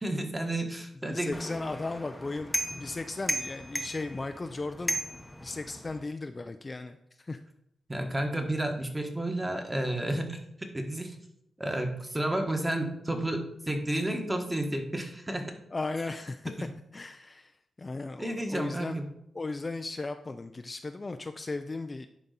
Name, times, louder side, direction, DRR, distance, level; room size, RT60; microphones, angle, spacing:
voice 1, 0.0-1.3 7.9-10.4 10.7-11.2 11.6-15.5 18.2-19.0, right 1 dB, 15° right, 3 dB, 1.4 m, -31 dB
voice 2, 1.1-7.4 15.7-16.5 16.9-19.0 19.3-22.1, left 3 dB, 30° left, 8 dB, 0.4 m, -36 dB
sound 1, 1.3-6.0, equal, 5° left, 0.8 m, -36 dB
10.5 x 4.1 x 4.0 m, 0.79 s
cardioid pair, 80°, 0 cm